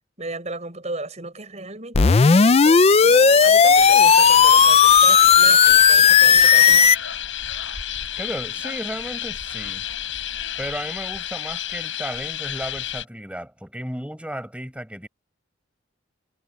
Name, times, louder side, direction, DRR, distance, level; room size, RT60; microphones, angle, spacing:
voice 1, 0.2-6.9, right 2 dB, 35° right, 6.4 m, -35 dB
sound 1, 1.9-7.0, left 6 dB, 30° left, 0.4 m, -13 dB
sound 2, 3.7-13.0, left 10 dB, 80° left, 5.0 m, -31 dB
voice 2, 8.2-9.8 10.6-15.1, equal, 5° right, 6.3 m, -34 dB
head